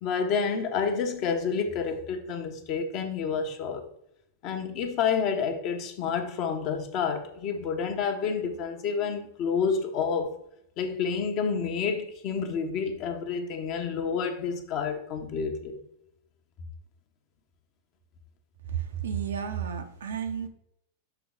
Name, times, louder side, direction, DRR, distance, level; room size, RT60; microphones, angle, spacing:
voice 1, 0.0-3.8 4.4-10.3 10.8-15.8, left 6 dB, 40° left, 1.0 m, -29 dB
voice 2, 18.7-20.5, right 8 dB, 65° right, 0.8 m, -32 dB
7.0 x 3.9 x 3.6 m
figure-of-eight pair, 90°, 0 cm